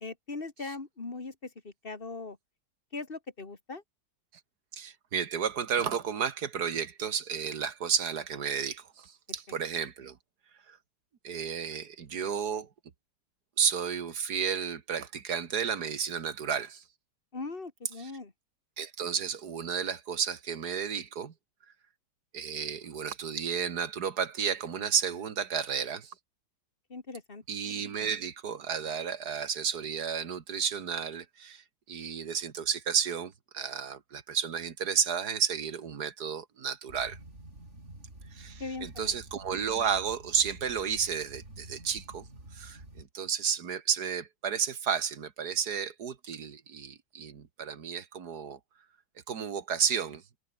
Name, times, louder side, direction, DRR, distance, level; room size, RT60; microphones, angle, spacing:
voice 1, 0.0-2.4 2.9-3.8 17.3-18.3 26.9-27.4 38.6-39.1, left 3 dB, 30° left, 2.4 m, -40 dB
voice 2, 4.7-10.2 10.7-10.8 11.2-12.7 13.6-16.8 18.0-18.1 18.8-21.3 22.3-26.1 27.5-37.2 38.3-42.3 42.5-48.6 49.3-50.2, right 7 dB, 55° right, 2.1 m, -32 dB
sound 1, 36.9-43.1, right 2 dB, 35° right, 6.5 m, -49 dB
omnidirectional pair, 2.0 m